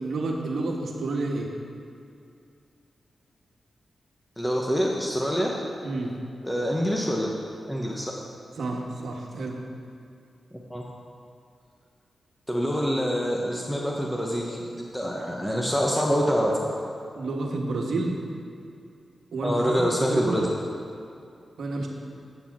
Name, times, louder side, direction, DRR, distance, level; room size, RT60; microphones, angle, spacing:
voice 1, 0.0-1.5 5.8-6.1 8.6-9.6 17.1-18.2 19.3-20.5 21.6-21.9, right 2 dB, 80° right, 0 dB, 1.3 m, -30 dB
voice 2, 4.4-5.6 6.4-7.3 7.7-8.1 10.7-10.8 12.5-16.8 19.4-20.4, equal, 5° left, -2 dB, 1.0 m, -26 dB
9.1 x 6.8 x 6.1 m, 2.5 s
cardioid pair, 75°, 0 cm